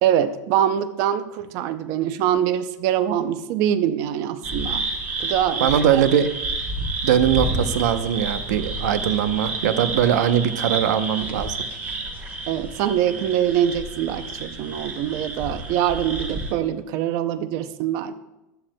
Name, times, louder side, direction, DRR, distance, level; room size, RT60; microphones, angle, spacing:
voice 1, 0.0-4.8 5.2-6.0 12.5-18.2, right 10 dB, 35° right, 12 dB, 0.5 m, -24 dB
sound 1, 4.4-16.5, right 2 dB, 15° right, 1.0 m, -30 dB
voice 2, 5.6-6.3 7.0-11.6, right 9 dB, 70° right, 11 dB, 0.7 m, -21 dB
15.0 x 10.5 x 2.2 m, 0.97 s
supercardioid pair, 180°, 10 cm